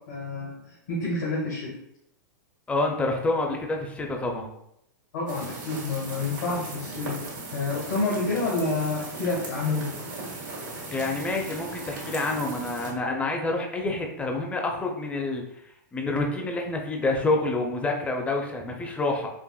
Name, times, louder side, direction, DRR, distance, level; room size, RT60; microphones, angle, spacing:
voice 1, 0.1-1.7 5.1-7.2 7.5-9.9, left 3 dB, 70° left, -6 dB, 1.4 m, -28 dB
voice 2, 2.7-4.5 10.9-15.4 15.9-19.3, left 2 dB, 10° left, 2 dB, 0.6 m, -27 dB
sound 1, 5.3-12.9, right 2 dB, 85° right, 1.5 m, -38 dB
5.0 x 2.5 x 2.3 m, 0.79 s
hypercardioid pair, 110°, 10 cm